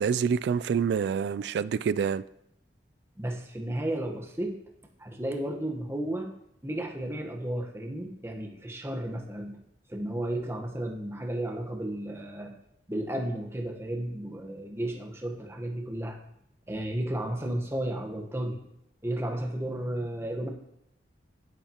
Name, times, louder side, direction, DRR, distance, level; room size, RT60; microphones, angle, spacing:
voice 1, 0.0-2.2, right 6 dB, 70° right, 0.3 m, -27 dB
voice 2, 3.2-4.6 5.0-6.3 6.6-9.6 9.9-12.5 12.9-16.2 16.7-18.6 19.0-20.5, right 1 dB, 15° right, 1.1 m, -33 dB
10.0 x 10.0 x 2.9 m
head